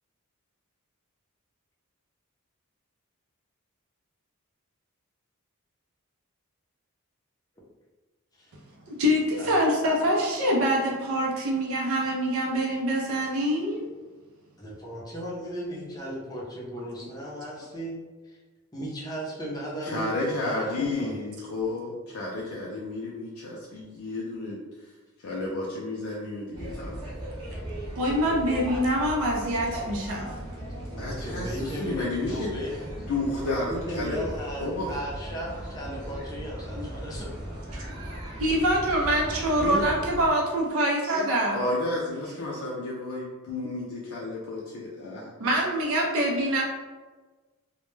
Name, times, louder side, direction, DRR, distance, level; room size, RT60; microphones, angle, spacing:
voice 1, 8.9-13.9 28.0-30.3 36.8-36.9 38.4-41.6 45.4-46.6, equal, 70° right, -1 dB, 0.4 m, -25 dB
voice 2, 14.6-18.0 18.2-18.4 18.7-21.3 30.9-32.7 33.4-37.3, equal, 15° left, -4 dB, 0.5 m, -36 dB
voice 3, 19.8-24.9 25.2-27.1 31.0-32.6 33.1-34.2 34.6-34.9 39.6-39.9 41.5-45.3, left 2 dB, 80° left, -4 dB, 0.4 m, -32 dB
sound 1, 26.5-40.3, right 1 dB, 20° right, 0.6 m, -37 dB
2.1 x 2.1 x 3.0 m, 1.3 s
head